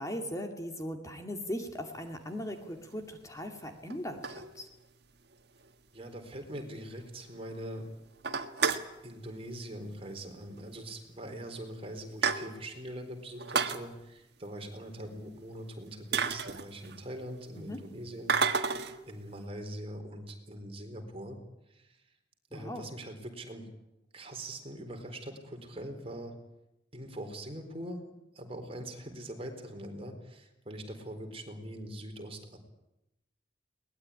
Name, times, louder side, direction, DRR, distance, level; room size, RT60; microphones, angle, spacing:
voice 1, 0.0-4.7 17.5-17.8 22.5-22.9, equal, 20° left, 4 dB, 2.5 m, -39 dB
sound 1, 2.0-2.1 2.9-3.0 3.9-4.9 5.3-5.4 5.6-5.7 6.1-6.2 6.5-6.6 7.0-7.4 7.7-7.8 8.1-8.9 10.0-10.3 10.6-10.7 11.4-11.5 11.8-12.8 13.3-13.8 15.5-15.6 16.1-17.1 18.3-19.0, right 6 dB, 65° right, 1.7 m, -31 dB
voice 2, 5.9-7.9 9.0-21.4 21.7-21.9 22.5-23.7 24.1-26.4 26.9-28.0 28.3-32.6, right 1 dB, 30° right, 4 dB, 4.3 m, -42 dB
22.5 x 20.0 x 9.9 m, 0.90 s
head